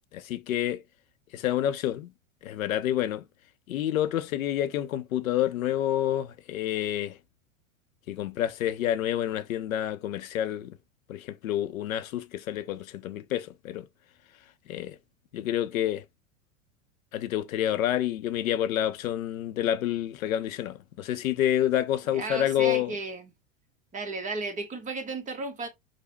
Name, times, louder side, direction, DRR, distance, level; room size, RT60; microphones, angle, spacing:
voice 1, 0.1-0.8 1.3-2.1 2.4-3.2 3.7-7.2 8.1-10.7 11.1-13.9 14.7-15.0 15.3-16.0 17.1-23.0, left 11 dB, 85° left, 0.6 m, -28 dB
voice 2, 22.1-23.3 23.9-25.7, right 3 dB, 20° right, 0.8 m, -34 dB
4.9 x 2.1 x 2.7 m
hypercardioid pair, 110°, 40 cm